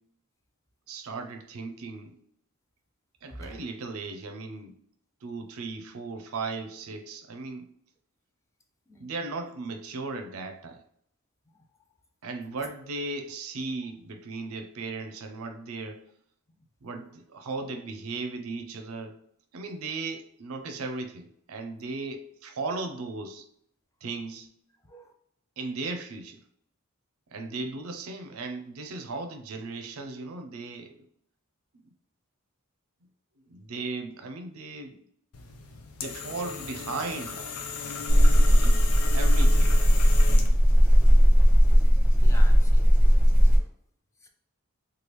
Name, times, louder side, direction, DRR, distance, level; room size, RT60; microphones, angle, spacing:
voice 1, 0.9-2.2 3.2-4.7 5.2-7.7 9.0-10.8 12.2-16.0 16.8-19.2 19.5-23.5 24.0-24.5 25.6-26.4 27.3-31.0 33.5-35.0 36.0-37.4 38.6-38.8 39.1-39.7, right 3 dB, 70° right, 0.5 m, -36 dB
voice 2, 3.3-3.6 8.9-9.0 24.9-25.1 42.2-43.2 44.2-44.3, left 1 dB, 15° left, 0.3 m, -45 dB
sound 1, 35.3-40.7, left 5 dB, 85° left, 0.5 m, -37 dB
sound 2, 38.1-43.6, equal, 5° right, 0.7 m, -17 dB
3.2 x 2.3 x 3.0 m
head